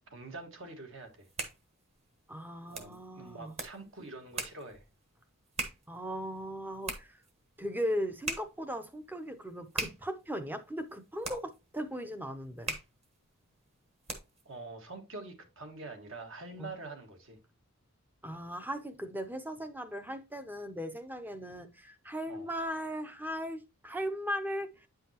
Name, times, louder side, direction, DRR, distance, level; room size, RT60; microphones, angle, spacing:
voice 1, 0.1-1.3 2.7-4.9 14.5-17.4 22.3-22.5, right 3 dB, 60° right, 1.6 m, -45 dB
sound 1, 1.0-14.5, right 3 dB, 30° right, 1.2 m, -43 dB
voice 2, 2.3-3.5 5.9-7.2 7.6-12.7 16.6-16.7 18.2-24.9, equal, 10° right, 0.6 m, -38 dB
9.1 x 5.6 x 2.9 m
head